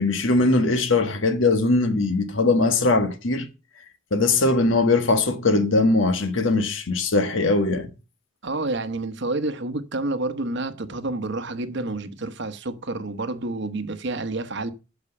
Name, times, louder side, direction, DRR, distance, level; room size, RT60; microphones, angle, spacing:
voice 1, 0.0-3.5 4.1-7.9, left 3 dB, 65° left, 1.3 m, -20 dB
voice 2, 8.4-14.7, right 2 dB, 60° right, 1.0 m, -29 dB
8.5 x 6.0 x 6.7 m
head